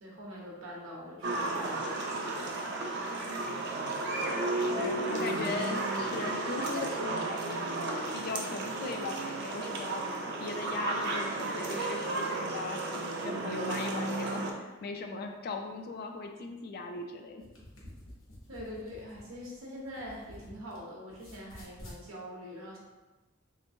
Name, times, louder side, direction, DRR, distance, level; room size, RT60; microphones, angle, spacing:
voice 1, 0.0-2.8 5.1-5.7 18.5-22.8, equal, 80° right, -3 dB, 1.0 m, -44 dB
sound 1, 1.2-14.5, right 2 dB, 55° right, 0.4 m, -33 dB
voice 2, 4.5-7.8 8.1-10.1 10.4-17.4, left 4 dB, 50° left, 4 dB, 0.3 m, -39 dB
sound 2, 17.4-20.8 21.1-22.0, left 1 dB, 65° left, 0.9 m, -50 dB
3.3 x 2.9 x 2.7 m, 1.2 s
head